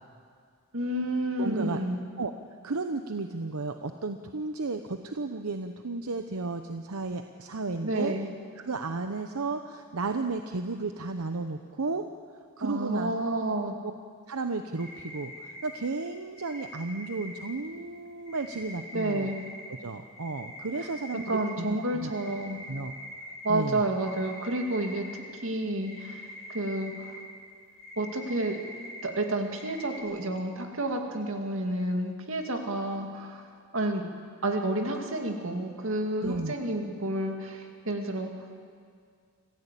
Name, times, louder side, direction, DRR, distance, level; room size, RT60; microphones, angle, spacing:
voice 1, 0.7-2.1 7.8-8.3 12.6-13.8 18.9-19.4 20.8-20.9 21.3-22.6 23.4-27.2 28.0-28.6 29.0-34.0 34.4-38.3, right 1 dB, 65° right, 3 dB, 2.3 m, -30 dB
voice 2, 1.4-1.8 2.2-2.3 2.6-8.1 8.6-12.0 12.6-13.4 13.8-13.9 14.3-19.3 19.8-22.1 22.7-22.9 23.5-23.8 36.2-36.5, right 3 dB, 80° right, 7 dB, 0.9 m, -33 dB
sound 1, 14.8-15.8 16.4-17.7 18.3-19.7 20.2-21.5 22.1-23.5 24.0-25.2 25.8-27.2 27.8-29.0 29.6-30.0, left 1 dB, 15° left, 7.0 m, -44 dB
26.0 x 15.5 x 8.4 m, 2.1 s
head